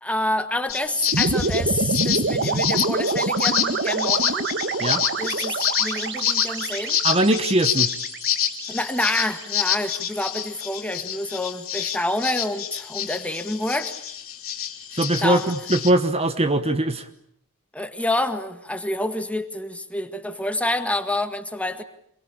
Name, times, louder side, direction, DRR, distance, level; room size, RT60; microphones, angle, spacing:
voice 1, 0.0-4.5 5.2-7.0 8.7-13.9 15.2-15.5 17.7-21.8, left 1 dB, 5° left, 8 dB, 1.8 m, -28 dB
sound 1, 0.7-15.9, left 10 dB, 70° left, 3.3 m, -27 dB
sound 2, 1.1-9.4, right 3 dB, 55° right, 1.6 m, -26 dB
voice 2, 7.0-7.9 14.9-17.1, right 1 dB, 30° right, 10 dB, 1.1 m, -21 dB
27.0 x 23.0 x 8.7 m, 0.71 s
head